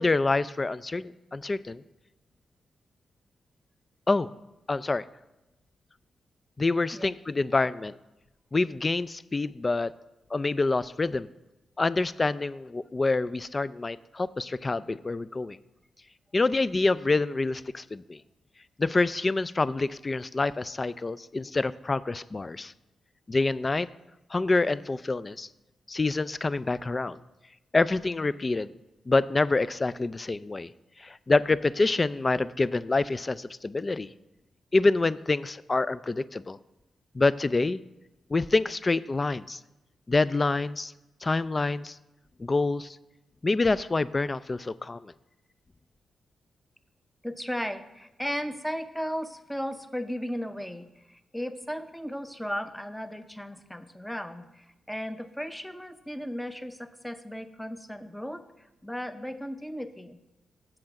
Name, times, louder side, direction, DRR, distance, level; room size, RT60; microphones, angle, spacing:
voice 1, 0.0-1.8 4.1-4.3 4.7-5.0 6.6-7.9 8.5-9.9 10.3-11.3 11.8-15.6 16.3-18.2 18.8-22.7 23.3-23.9 24.3-25.5 25.9-27.2 27.7-28.7 29.1-30.7 31.0-34.1 34.7-36.6 37.1-37.8 38.3-39.6 40.1-40.9 41.2-42.0 42.4-43.0 43.4-45.1, left 3 dB, 30° left, 16 dB, 0.3 m, -26 dB
voice 2, 47.2-58.4 58.8-60.2, equal, 5° left, 9 dB, 0.7 m, -35 dB
7.8 x 7.5 x 5.9 m, 0.98 s
cardioid pair, 90°, 0 cm